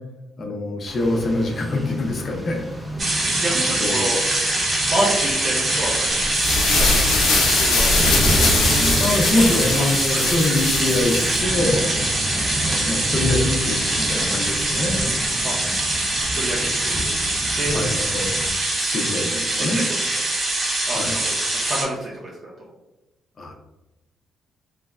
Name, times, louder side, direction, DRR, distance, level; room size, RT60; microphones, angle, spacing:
voice 1, 0.4-2.7 3.8-4.0 9.0-11.9 12.6-15.0 17.7-18.4 18.8-19.9 20.9-21.2 23.4-23.6, left 2 dB, 50° left, 2 dB, 0.6 m, -24 dB
Rain, 0.9-18.5, equal, 10° right, 0.5 m, -30 dB
sound 1, 3.0-21.8, right 2 dB, 35° right, 0.9 m, -23 dB
voice 2, 3.3-4.2 4.8-6.2 6.7-7.2 7.6-8.1 10.1-10.3 15.4-15.5 16.3-17.1 17.6-17.8 19.6-20.0 20.9-22.7, right 1 dB, 55° right, -5 dB, 0.5 m, -28 dB
sound 2, 6.2-11.4, left 3 dB, 90° left, 0.6 m, -22 dB
3.2 x 2.0 x 2.3 m, 1.0 s
cardioid pair, 90°, 0 cm